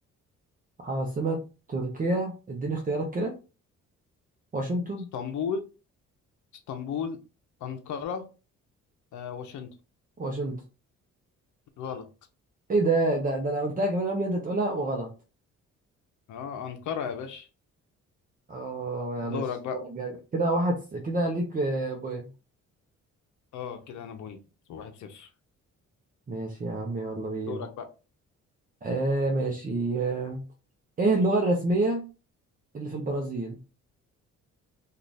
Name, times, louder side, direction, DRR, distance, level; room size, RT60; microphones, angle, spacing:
voice 1, 0.8-1.4 1.7-3.3 4.5-5.1 10.2-10.6 12.7-15.1 18.5-19.4 19.7-22.3 26.3-27.6 28.8-30.5 31.0-32.0 32.7-33.6, right 2 dB, 30° right, 0 dB, 0.7 m, -28 dB
voice 2, 5.1-5.6 6.7-7.2 7.6-8.3 9.1-9.7 11.8-12.1 16.3-17.5 19.2-19.8 23.5-24.4 24.7-25.3 27.5-27.9, left 7 dB, 75° left, 6 dB, 0.7 m, -34 dB
2.5 x 2.4 x 3.2 m, 0.31 s
cardioid pair, 90°, 30 cm